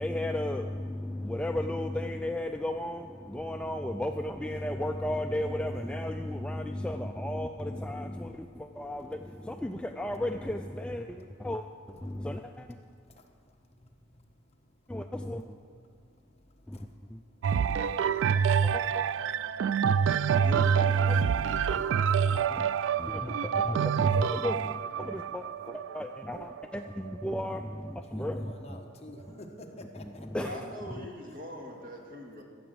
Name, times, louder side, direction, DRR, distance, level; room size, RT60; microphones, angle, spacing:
voice 1, 0.0-12.8 14.9-15.6 16.7-17.8 18.3-19.0 20.9-21.2 22.3-22.7 23.0-28.8 29.2-29.4 29.8-30.6 30.9-31.1, left 1 dB, 5° left, 5 dB, 0.3 m, -35 dB
sound 1, 17.4-27.2 27.9-28.0, right 7 dB, 75° right, 0.3 m, -27 dB
voice 2, 20.4-21.4 30.4-32.4, equal, 50° right, 0 dB, 2.2 m, -41 dB
voice 3, 21.3-22.5 28.1-30.3, left 1 dB, 35° left, 3 dB, 1.2 m, -47 dB
14.5 x 7.8 x 7.7 m, 2.3 s
head